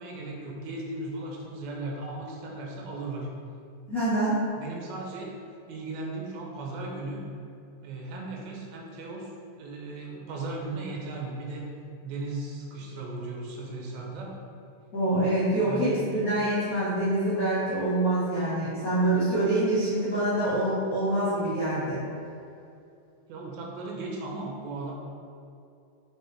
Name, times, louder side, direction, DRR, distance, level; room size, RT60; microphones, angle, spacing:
voice 1, 0.0-3.3 4.6-5.4 5.7-7.3 7.8-9.3 9.6-11.7 12.0-14.4 15.6-16.0 23.3-24.9, right 2 dB, 80° right, -1 dB, 2.7 m, -36 dB
voice 2, 3.9-4.4 14.9-22.0, right 1 dB, 55° left, -13 dB, 0.9 m, -25 dB
6.1 x 4.9 x 3.4 m, 2.6 s
omnidirectional pair, 4.2 m